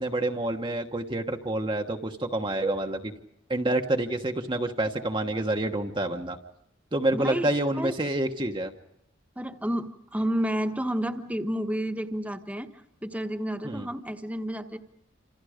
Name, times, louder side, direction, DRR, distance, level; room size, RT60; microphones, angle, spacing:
voice 1, 0.0-3.1 3.5-6.4 6.9-8.7 13.6-13.9, right 1 dB, 25° right, 3 dB, 1.2 m, -28 dB
voice 2, 7.1-7.9 9.4-12.7 13.0-14.8, equal, 10° right, 5 dB, 1.3 m, -30 dB
28.5 x 27.0 x 5.1 m, 0.77 s
head